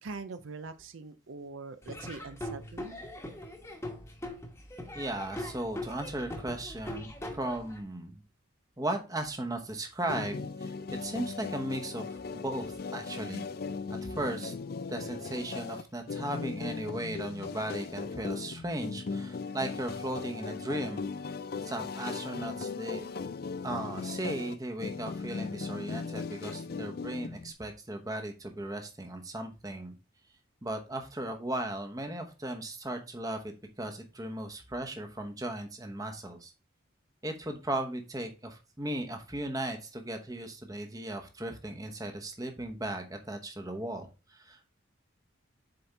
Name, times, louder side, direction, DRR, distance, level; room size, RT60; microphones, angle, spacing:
voice 1, 0.0-3.0, right 4 dB, 70° right, 11 dB, 0.5 m, -43 dB
Laughter / Drum, 1.8-7.8, left 1 dB, 15° left, 1.1 m, -41 dB
voice 2, 4.9-8.2 8.8-10.7 11.0-13.4 14.0-14.5 14.9-21.0 21.6-23.1 23.6-29.9 30.6-33.5 33.8-36.5 37.2-44.7, right 1 dB, 15° right, 5 dB, 0.9 m, -37 dB
sound 1, 10.1-27.5, left 4 dB, 45° left, 0.4 m, -38 dB
7.7 x 4.3 x 3.3 m, 0.30 s
head